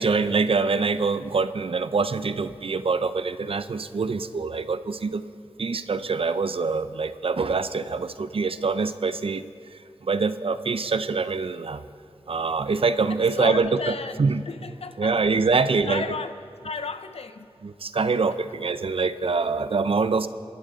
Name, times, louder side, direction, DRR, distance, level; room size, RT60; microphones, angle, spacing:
voice 1, 0.0-5.2 5.6-9.4 9.7-11.9 12.3-14.4 15.0-16.0 17.6-20.3, right 4 dB, 60° right, 13 dB, 0.6 m, -25 dB
voice 2, 13.1-15.3 15.9-16.4 16.6-17.5 18.3-18.4, left 4 dB, 70° left, 10 dB, 0.9 m, -34 dB
29.0 x 11.0 x 4.1 m, 2.5 s
wide cardioid pair, 70°, 11 cm